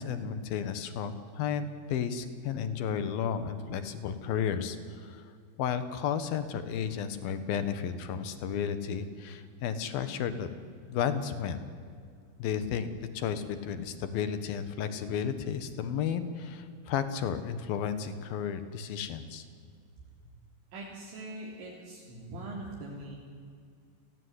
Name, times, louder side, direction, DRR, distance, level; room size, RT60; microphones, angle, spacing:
voice 1, 0.0-5.3 5.6-10.5 10.9-11.6 12.4-19.5, left 7 dB, 70° left, 11 dB, 2.4 m, -33 dB
voice 2, 20.7-23.2, right 2 dB, 65° right, -3 dB, 5.5 m, -42 dB
30.0 x 18.5 x 9.7 m, 2.3 s
omnidirectional pair, 5.9 m